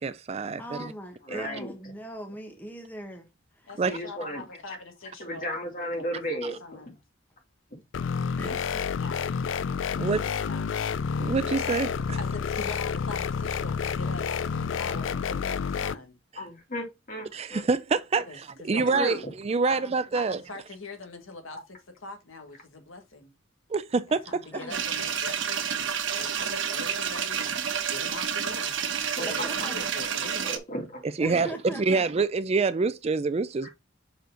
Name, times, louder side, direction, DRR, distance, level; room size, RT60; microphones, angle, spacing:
voice 1, 0.0-0.9 1.3-1.5 3.8-4.0 10.0-10.3 11.2-12.2 16.3-16.4 17.3-20.4 23.7-24.4 31.2-33.7, right 4 dB, 30° right, 0.3 m, -26 dB
voice 2, 0.6-3.3 3.6-3.7 8.4-8.6 24.5-24.7 29.3-29.9 31.2-32.0, right 1 dB, 10° left, 1.3 m, -40 dB
voice 3, 1.3-1.7 3.8-4.4 5.2-6.8 16.4-17.7 18.9-19.2 29.2-29.5 30.2-31.4 33.6-33.7, equal, 45° left, 2.8 m, -34 dB
voice 4, 3.7-6.9 8.5-9.4 10.0-10.7 12.2-14.3 14.6-16.2 18.3-19.2 19.7-21.8 22.0-23.3 24.1-27.5 27.8-28.8 29.0-30.5, left 3 dB, 80° left, 1.8 m, -43 dB
sound 1, 7.9-15.9, left 6 dB, 65° left, 0.4 m, -29 dB
sound 2, 24.7-30.6, right 8 dB, 65° right, 1.1 m, -29 dB
6.4 x 4.7 x 3.8 m
head